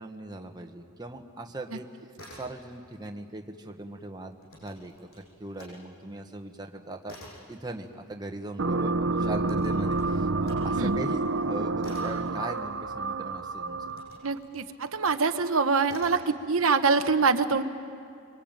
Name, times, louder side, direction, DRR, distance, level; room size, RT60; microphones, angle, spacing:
voice 1, 0.0-1.9 2.3-7.1 7.5-13.8, right 2 dB, 20° right, 3 dB, 1.4 m, -39 dB
sound 1, 2.1-3.0 3.3-5.8 6.2-13.2 13.8-15.3 15.8-16.3, left 1 dB, 90° left, 7.8 m, -50 dB
sound 2, 8.6-14.2, right 3 dB, 60° right, 0.8 m, -28 dB
voice 2, 14.2-17.6, right 4 dB, 85° right, 8 dB, 1.0 m, -24 dB
26.5 x 23.5 x 9.1 m, 2.4 s
head